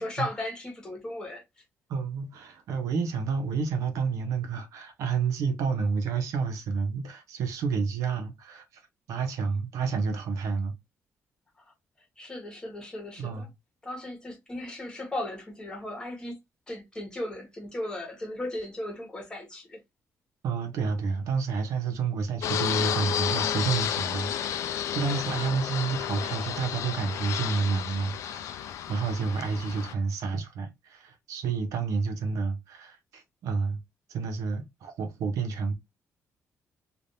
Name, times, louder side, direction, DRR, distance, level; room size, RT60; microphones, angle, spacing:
voice 1, 0.0-1.4 11.6-13.5 13.8-16.4 16.7-19.8, left 1 dB, 15° left, 1.2 m, -36 dB
voice 2, 1.9-8.8 9.1-10.7 13.2-13.5 20.4-33.8 34.1-35.7, right 5 dB, 85° right, 0.9 m, -30 dB
Fixed-wing aircraft airplane, 22.4-29.9, left 10 dB, 70° left, 0.4 m, -31 dB
3.3 x 2.5 x 2.6 m
cardioid pair, 170°, 5 cm